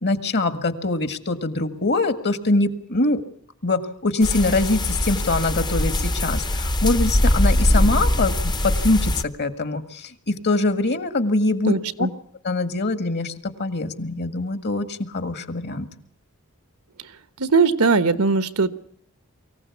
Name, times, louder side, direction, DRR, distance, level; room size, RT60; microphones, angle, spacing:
voice 1, 0.0-3.2 3.6-12.1 12.4-15.9, left 2 dB, 50° left, 11 dB, 1.8 m, -23 dB
sound 1, 4.2-9.2, left 1 dB, 20° left, 0.8 m, -21 dB
voice 2, 11.7-12.1 17.4-18.7, right 4 dB, 80° right, 14 dB, 1.2 m, -19 dB
24.0 x 15.5 x 8.3 m, 0.67 s
head